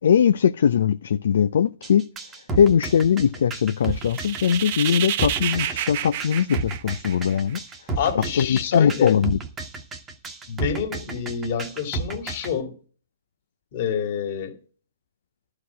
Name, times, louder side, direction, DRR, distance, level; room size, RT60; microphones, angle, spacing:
voice 1, 0.0-2.0 2.6-7.6 8.1-9.4, left 8 dB, 65° left, 0.5 m, -20 dB
sound 1, 1.8-12.5, right 4 dB, 15° right, 1.3 m, -32 dB
sound 2, 3.9-7.5, right 12 dB, 45° right, 0.7 m, -29 dB
voice 2, 8.0-9.3 10.5-12.7 13.7-14.6, left 8 dB, 45° left, 2.2 m, -27 dB
11.5 x 4.9 x 8.3 m
hypercardioid pair, 140°, 0 cm